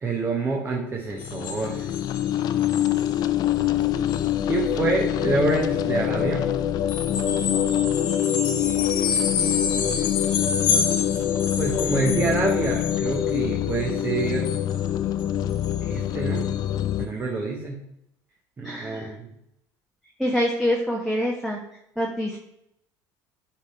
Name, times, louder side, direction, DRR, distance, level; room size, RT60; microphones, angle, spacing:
voice 1, 0.0-1.9 4.5-6.5 11.6-14.5 15.8-16.5 17.0-17.8 18.6-19.3, right 3 dB, 25° right, 0 dB, 1.1 m, -27 dB
sound 1, 1.1-17.1, left 11 dB, 50° left, 0.5 m, -25 dB
sound 2, 1.2-2.3 2.6-3.1 3.5-3.6 4.1-4.3 6.9-13.4 13.7-14.9 15.2-15.3 15.5-15.9 16.4-16.5, left 6 dB, 70° left, 1.7 m, -29 dB
voice 2, 18.6-19.1 20.2-21.6 22.0-22.4, equal, ahead, -2 dB, 1.0 m, -25 dB
10.5 x 3.7 x 4.3 m, 0.80 s
cardioid pair, 130°, 8 cm